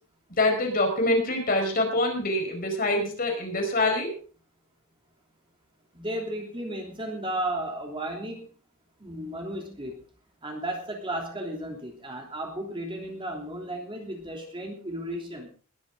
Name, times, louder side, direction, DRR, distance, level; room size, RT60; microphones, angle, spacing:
voice 1, 0.3-4.1, left 2 dB, 40° left, 3 dB, 5.0 m, -25 dB
voice 2, 5.9-8.5 9.0-10.0 10.4-15.5, right 1 dB, 25° right, 1 dB, 3.3 m, -34 dB
21.5 x 10.5 x 3.9 m, 0.39 s
head